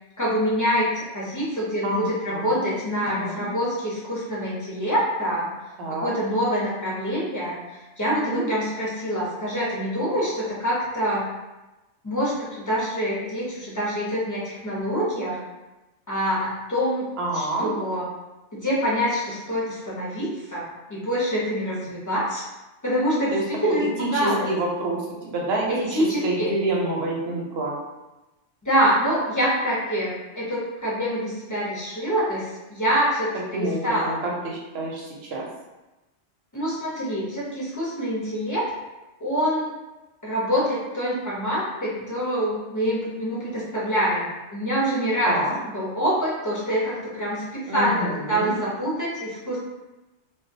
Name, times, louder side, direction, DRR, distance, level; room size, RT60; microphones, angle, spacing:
voice 1, 0.2-5.5 6.0-7.6 8.0-11.3 12.0-15.4 16.1-17.1 17.3-18.0 18.5-22.4 22.8-24.5 25.7-26.5 28.6-34.2 36.5-38.6 39.2-39.7 40.2-45.4 45.7-49.6, equal, 25° left, -7 dB, 0.4 m, -25 dB
voice 2, 1.8-2.7 3.0-3.4 5.8-6.1 8.2-8.4 17.2-17.7 23.3-23.4 24.0-27.7 33.5-35.4 45.3-45.6 47.7-48.5, right 1 dB, 65° right, -2 dB, 0.8 m, -28 dB
2.2 x 2.2 x 2.6 m, 1.1 s
omnidirectional pair, 1.2 m